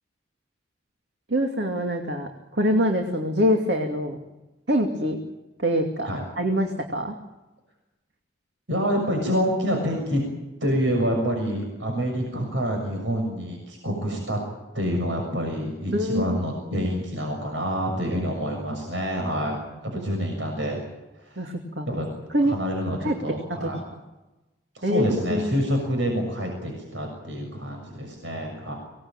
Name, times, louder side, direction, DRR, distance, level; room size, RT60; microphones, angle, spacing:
voice 1, 1.3-4.2 4.7-5.2 5.6-6.1 6.4-7.1 15.9-16.4 16.7-16.9 21.4-21.9 22.3-22.5 23.0-23.1 23.6-23.7 24.8-25.0 25.3-25.5, equal, 65° right, 3 dB, 2.7 m, -24 dB
voice 2, 8.7-10.2 10.6-14.4 14.7-19.6 19.8-20.8 21.2-21.4 21.9-22.1 22.4-23.8 24.7-28.7, equal, 80° right, 2 dB, 6.7 m, -27 dB
25.5 x 19.0 x 9.0 m, 1.1 s
head